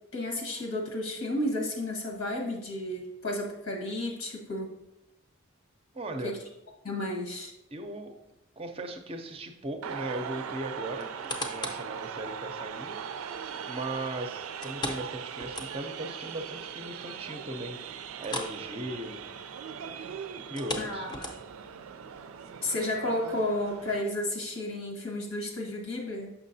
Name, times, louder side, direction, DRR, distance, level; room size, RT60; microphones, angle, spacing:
voice 1, 0.1-4.7 6.2-6.4 6.8-7.5 20.8-21.1 22.6-26.3, left 1 dB, 80° left, 1 dB, 1.4 m, -32 dB
voice 2, 5.9-6.3 7.7-8.2 8.6-11.1 11.4-13.0 13.6-17.8 18.2-19.3 20.3-21.1, right 1 dB, 25° right, 5 dB, 0.5 m, -38 dB
sound 1, 9.8-24.0, right 7 dB, 85° right, 0.4 m, -40 dB
sound 2, 11.0-11.9 12.4-12.5 14.6-16.1 16.4-16.5 16.9-17.0 18.2-18.6 18.9-19.1 20.4-21.7 22.3-22.4, left 1 dB, 20° left, 0.5 m, -37 dB
6.4 x 5.9 x 2.7 m, 0.87 s
head